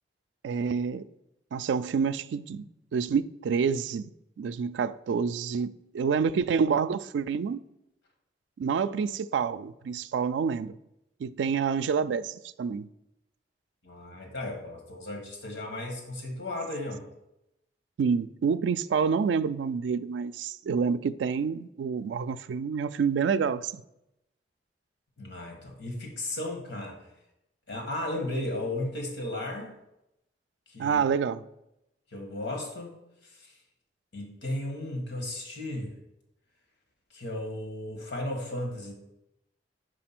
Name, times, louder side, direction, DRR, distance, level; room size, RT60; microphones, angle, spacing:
voice 1, 0.4-1.1 1.5-2.7 2.9-4.1 4.4-7.6 8.6-10.8 11.2-12.9 18.0-23.8 30.8-31.4, right 6 dB, 90° right, 0.3 m, -28 dB
voice 2, 13.8-17.0 25.2-27.0 27.7-29.7 30.7-31.0 32.1-32.9 33.2-33.5 34.1-35.9 37.1-38.9, left 1 dB, 85° left, 1.6 m, -35 dB
5.0 x 4.3 x 5.9 m
head